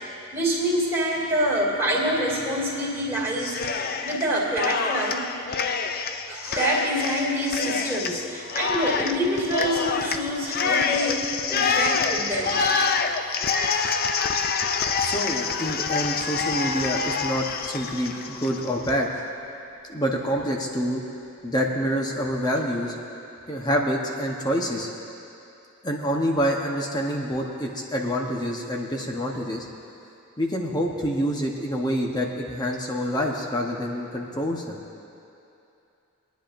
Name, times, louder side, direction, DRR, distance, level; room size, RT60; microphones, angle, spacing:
voice 1, 0.3-3.7 4.0-5.3 6.3-12.6 13.6-14.1 18.1-18.2, equal, 10° right, -5 dB, 2.7 m, -26 dB
Cheering, 3.4-4.2 4.5-18.9, left 5 dB, 45° left, 0.4 m, -26 dB
voice 2, 15.0-19.1 19.9-21.0 21.4-23.0 23.5-24.9 25.8-29.7 30.4-34.8, equal, 20° left, 0 dB, 1.0 m, -27 dB
22.5 x 10.5 x 2.6 m, 2.7 s
head